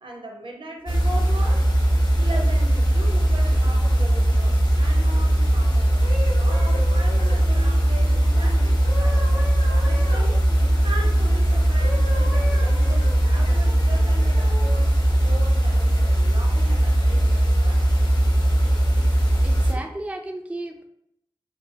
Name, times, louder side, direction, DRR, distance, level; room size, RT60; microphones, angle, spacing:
voice 1, 0.0-1.7 2.2-6.1 6.4-10.5 10.8-15.0 15.2-18.0, right 1 dB, 65° right, 1 dB, 0.6 m, -38 dB
sound 1, 0.9-19.7, right 1 dB, 50° left, 0.7 m, -19 dB
sound 2, 6.0-11.4 11.8-14.7 15.3-15.6, left 2 dB, 85° left, 0.8 m, -37 dB
voice 2, 19.4-20.9, right 1 dB, 15° right, 3 dB, 0.3 m, -33 dB
2.7 x 2.3 x 2.7 m, 0.74 s
wide cardioid pair, 50°, 9 cm